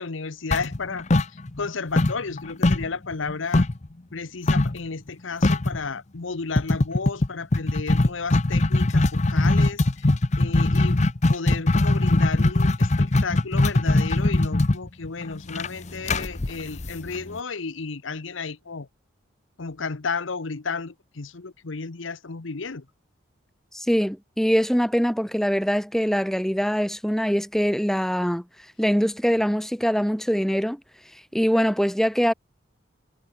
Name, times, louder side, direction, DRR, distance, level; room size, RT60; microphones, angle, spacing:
voice 1, 0.0-3.7 4.1-11.0 11.3-18.9 19.6-22.9, left 4 dB, 85° left, 1.0 m, -33 dB
sound 1, 0.5-1.7 2.0-3.9 4.5-4.8 5.1-5.2 5.4-5.8 6.6-17.4, left 2 dB, 35° left, 0.8 m, -21 dB
voice 2, 23.7-28.4 28.8-30.8 31.3-32.3, equal, ahead, 1.4 m, -23 dB
head